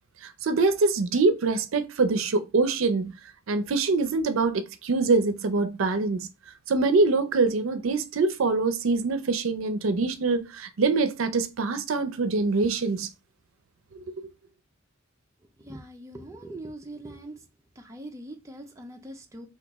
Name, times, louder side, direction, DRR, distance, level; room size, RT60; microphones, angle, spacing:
voice 1, 0.2-3.2 3.5-6.3 6.7-13.1 14.1-14.3, right 3 dB, 75° right, 0.5 m, -24 dB
voice 2, 15.6-17.4 17.8-19.5, right 1 dB, 15° right, 0.4 m, -42 dB
2.9 x 2.3 x 3.4 m
head